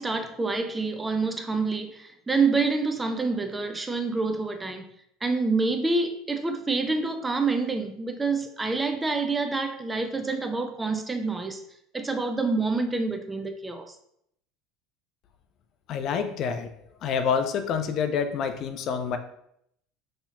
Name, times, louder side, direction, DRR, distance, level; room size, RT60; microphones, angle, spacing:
voice 1, 0.0-4.9 5.2-11.6 11.9-13.9, right 3 dB, 15° right, 6 dB, 0.4 m, -27 dB
voice 2, 15.9-16.7 17.0-19.2, left 6 dB, 50° left, 8 dB, 0.3 m, -27 dB
4.1 x 2.8 x 2.4 m, 0.74 s
figure-of-eight pair, 70°, 0 cm